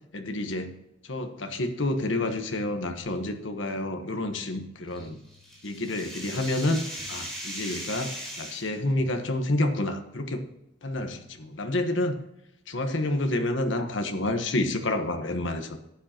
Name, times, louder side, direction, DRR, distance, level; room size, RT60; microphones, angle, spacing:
voice 1, 0.1-0.7 1.0-5.2 5.6-6.8 7.1-10.5 10.8-12.2 12.7-15.8, left 1 dB, 80° left, 6 dB, 1.2 m, -29 dB
sound 1, 3.0-4.2 5.0-6.2 7.0-8.2 9.0-10.2 11.0-12.2, left 1 dB, 15° right, 2.6 m, -55 dB
sound 2, 4.9-8.7, equal, ahead, 3.7 m, -38 dB
13.5 x 9.0 x 2.9 m, 0.86 s
head